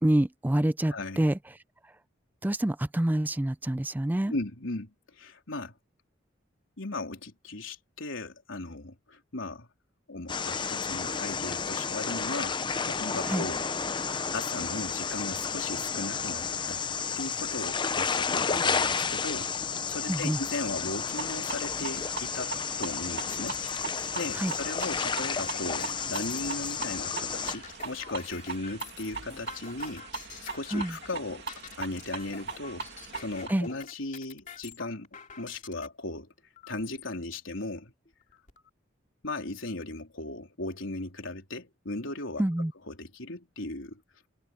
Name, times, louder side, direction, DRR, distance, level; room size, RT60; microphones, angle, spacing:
voice 1, 0.0-1.4 2.4-4.3 13.3-13.5 20.1-20.4 24.4-24.5 30.7-30.9 33.5-33.7 42.4-42.7, right 1 dB, 10° right, 0.4 m, -27 dB
voice 2, 0.9-1.2 4.3-5.7 6.8-9.7 10.1-14.0 14.3-16.8 17.2-19.5 19.9-22.5 22.8-23.6 24.2-30.1 30.4-31.5 31.8-32.9 33.2-35.1 35.4-36.3 36.7-37.9 39.2-42.4 42.9-44.0, left 2 dB, 80° left, 3.9 m, -37 dB
sound 1, 10.3-27.6, left 5 dB, 25° left, 0.7 m, -31 dB
sound 2, 21.1-33.5, right 5 dB, 60° right, 2.6 m, -40 dB
sound 3, 23.0-35.9 36.6-37.1 37.7-37.8 38.1-38.7, left 5 dB, 40° left, 2.8 m, -46 dB
head